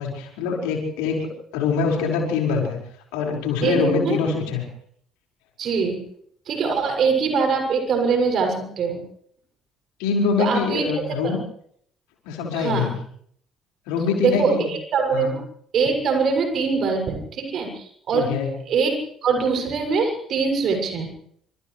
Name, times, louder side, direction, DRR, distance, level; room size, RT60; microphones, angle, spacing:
voice 1, 0.0-2.8 3.1-4.7 10.0-11.4 12.2-12.9 13.9-14.7 15.1-15.3 18.1-18.5, left 5 dB, 70° left, 0 dB, 5.4 m, -24 dB
voice 2, 3.6-4.2 5.6-6.0 6.5-9.0 10.4-10.8 11.2-11.3 12.5-12.9 14.2-15.4 15.7-18.3 18.7-21.1, right 5 dB, 50° right, 4 dB, 7.0 m, -23 dB
29.5 x 27.0 x 3.4 m, 0.65 s
figure-of-eight pair, 50°, 0 cm